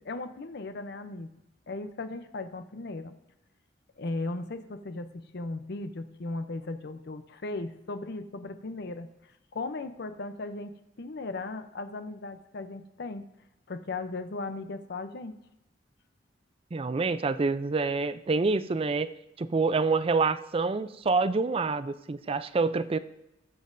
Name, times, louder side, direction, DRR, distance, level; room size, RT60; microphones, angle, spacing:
voice 1, 0.0-1.3 1.7-3.1 4.0-9.1 9.5-13.3 13.7-15.3, left 2 dB, 60° left, 10 dB, 0.6 m, -37 dB
voice 2, 16.7-19.1 19.4-23.0, right 4 dB, 30° right, 13 dB, 0.4 m, -27 dB
20.0 x 7.3 x 2.6 m, 0.89 s
head